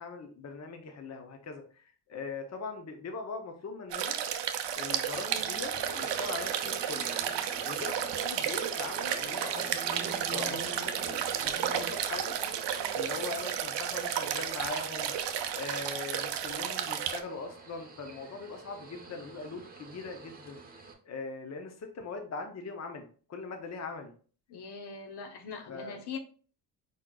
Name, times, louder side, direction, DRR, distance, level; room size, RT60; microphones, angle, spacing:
voice 1, 0.0-4.2 4.8-7.1 7.6-10.0 10.3-12.4 12.9-15.1 15.5-24.1 25.7-26.0, left 4 dB, 40° left, 0.7 m, -41 dB
sound 1, 3.9-17.2, right 9 dB, 85° right, 0.6 m, -32 dB
sound 2, 5.1-20.9, right 3 dB, 20° right, 0.9 m, -46 dB
voice 2, 24.5-26.2, left 5 dB, 70° left, 0.9 m, -42 dB
4.7 x 4.2 x 2.3 m
wide cardioid pair, 125°, 41 cm